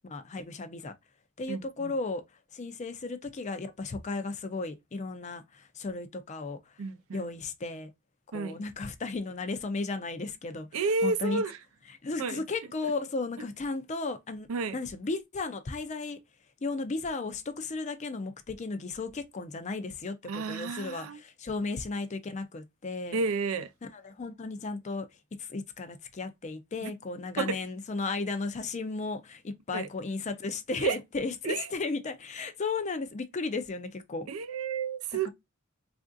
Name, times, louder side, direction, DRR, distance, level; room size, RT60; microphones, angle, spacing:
voice 1, 0.0-0.9 1.4-2.2 2.5-6.8 7.1-7.9 8.3-11.4 12.0-14.5 14.7-16.2 16.6-23.2 23.9-25.1 25.4-34.3, left 3 dB, 35° left, 0.5 m, -35 dB
voice 2, 1.5-1.9 6.8-7.3 8.3-8.6 10.7-11.6 12.2-12.4 14.5-14.8 20.3-21.2 23.1-23.7 26.8-26.9 27.4-27.6 29.7-29.9 30.8-31.0 31.4-31.7 34.3-35.3, right 4 dB, 80° right, 0.5 m, -31 dB
3.5 x 2.5 x 2.3 m
head